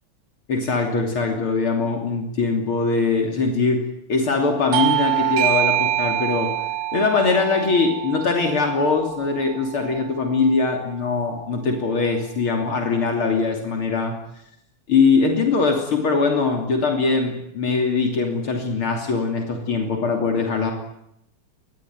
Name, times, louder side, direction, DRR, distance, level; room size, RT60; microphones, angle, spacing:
voice 1, 0.5-3.8 4.1-6.5 6.9-14.1 14.9-20.7, left 4 dB, 70° left, 2 dB, 3.8 m, -21 dB
Bell / Doorbell, 4.7-9.8, right 14 dB, 90° right, 2.9 m, -25 dB
25.0 x 20.5 x 9.4 m, 0.81 s
omnidirectional pair, 2.4 m